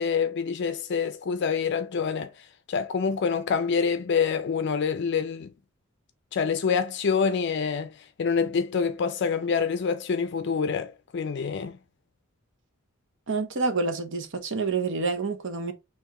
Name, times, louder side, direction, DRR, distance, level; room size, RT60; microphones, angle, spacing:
voice 1, 0.0-2.3 2.7-5.5 6.3-7.9 8.2-11.8, left 6 dB, 55° left, 0.4 m, -26 dB
voice 2, 13.3-15.7, right 4 dB, 60° right, 0.9 m, -28 dB
4.7 x 3.0 x 3.7 m
head